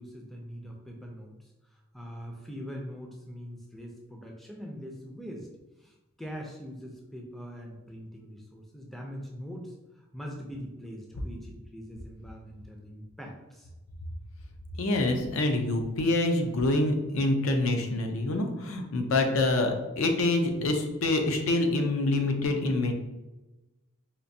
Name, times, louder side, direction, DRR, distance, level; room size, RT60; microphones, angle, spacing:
voice 1, 0.0-5.5 5.8-13.7, equal, ahead, 0 dB, 0.4 m, -42 dB
voice 2, 14.7-22.9, left 2 dB, 80° left, 4 dB, 0.5 m, -26 dB
4.3 x 2.5 x 2.6 m, 1.0 s
head